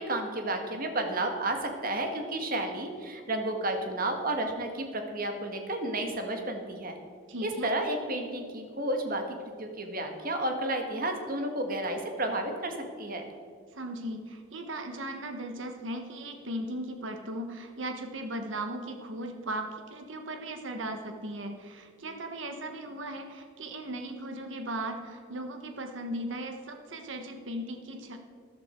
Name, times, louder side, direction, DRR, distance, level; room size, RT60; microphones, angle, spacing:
voice 1, 0.0-7.0 7.4-9.2 9.6-13.2, right 1 dB, 45° right, 4 dB, 1.8 m, -32 dB
voice 2, 7.3-7.7 13.7-28.2, right 1 dB, 70° right, 5 dB, 1.3 m, -37 dB
13.5 x 12.0 x 4.5 m, 2.1 s
head